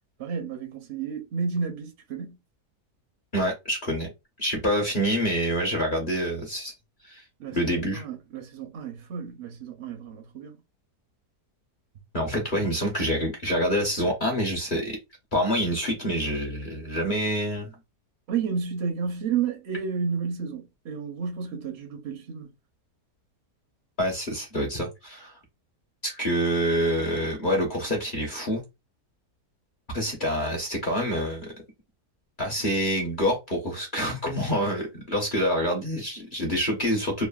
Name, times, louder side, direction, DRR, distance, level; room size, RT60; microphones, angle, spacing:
voice 1, 0.2-2.4 7.4-10.6 18.3-22.5, right 6 dB, 65° right, 0.7 m, -31 dB
voice 2, 3.3-4.1 4.4-6.7 7.0-7.2 7.5-8.0 12.1-15.0 15.3-17.7 24.0-25.3 26.0-28.6 29.9-31.5 32.4-37.3, equal, 40° left, 0.7 m, -26 dB
3.2 x 2.1 x 2.3 m
omnidirectional pair, 1.7 m